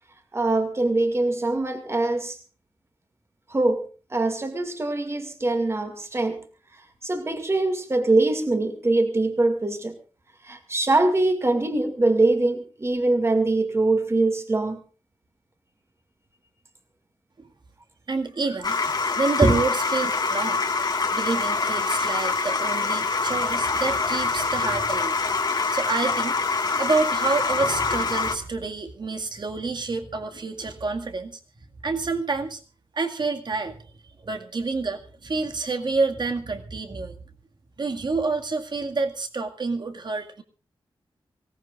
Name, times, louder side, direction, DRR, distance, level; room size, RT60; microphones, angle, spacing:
voice 1, 0.3-2.4 3.5-6.4 7.0-9.9 10.4-14.8 19.4-19.5, right 2 dB, 30° right, 6 dB, 2.2 m, -23 dB
voice 2, 18.1-18.8 19.2-20.6 21.1-25.2 25.7-26.4 26.8-31.4 31.8-32.6 32.9-33.8 34.2-37.2 37.8-40.4, right 3 dB, 50° right, 5 dB, 2.0 m, -28 dB
sound 1, 18.6-28.4, left 4 dB, 45° left, 1.8 m, -25 dB
25.0 x 17.5 x 2.5 m, 0.34 s
wide cardioid pair, 140°, 9 cm